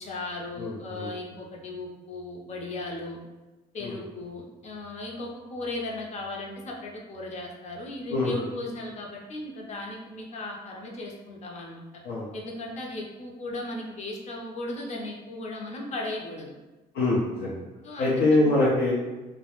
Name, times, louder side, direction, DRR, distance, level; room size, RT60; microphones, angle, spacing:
voice 1, 0.0-3.2 3.7-11.8 12.3-16.5 17.8-18.5, left 2 dB, 40° left, -1 dB, 0.6 m, -36 dB
voice 2, 0.6-1.1 3.8-3.9 8.1-8.5 12.0-12.3 16.9-17.6 18.0-18.9, left 2 dB, 85° left, -6 dB, 0.6 m, -24 dB
2.3 x 2.1 x 2.9 m, 1.2 s
cardioid pair, 110°, 17 cm